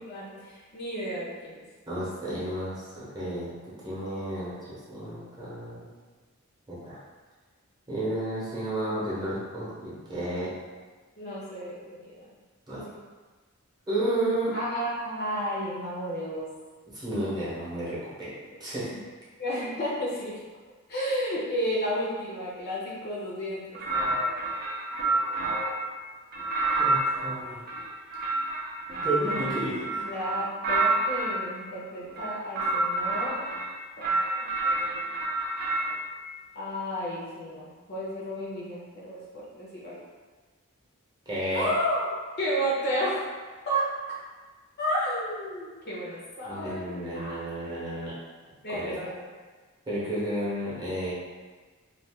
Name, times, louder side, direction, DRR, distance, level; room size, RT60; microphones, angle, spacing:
voice 1, 0.0-1.6 11.2-12.3 12.7-12.9 14.5-16.5 19.4-20.4 20.9-23.8 29.2-29.6 29.9-33.4 34.0-34.1 34.8-35.1 36.5-40.0 41.5-42.1 42.4-43.2 43.7-43.8 44.8-47.4 48.6-49.3, equal, 50° left, -6 dB, 0.7 m, -32 dB
voice 2, 1.9-3.5 3.8-5.9 6.7-7.0 7.9-10.5 12.7-12.8 13.9-14.5 16.9-18.3 18.6-18.9 26.8-27.7 29.0-29.9 41.3-41.7 46.4-48.1 48.7-48.9 49.9-51.1, right 1 dB, 20° right, -8 dB, 0.9 m, -32 dB
sound 1, 23.7-25.9 26.3-31.4 32.1-33.7 34.0-36.0, right 2 dB, 45° right, 0.5 m, -28 dB
2.5 x 2.4 x 3.4 m, 1.4 s
head